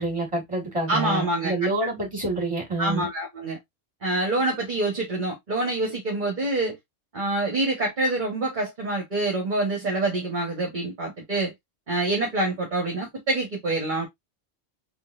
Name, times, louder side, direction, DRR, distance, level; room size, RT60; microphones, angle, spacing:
voice 1, 0.0-3.1, right 2 dB, 25° right, 2.0 m, -27 dB
voice 2, 0.9-1.7 2.8-3.6 4.0-6.8 7.1-11.5 11.9-14.1, right 2 dB, 40° right, 1.2 m, -26 dB
3.8 x 3.4 x 2.4 m
omnidirectional pair, 1.3 m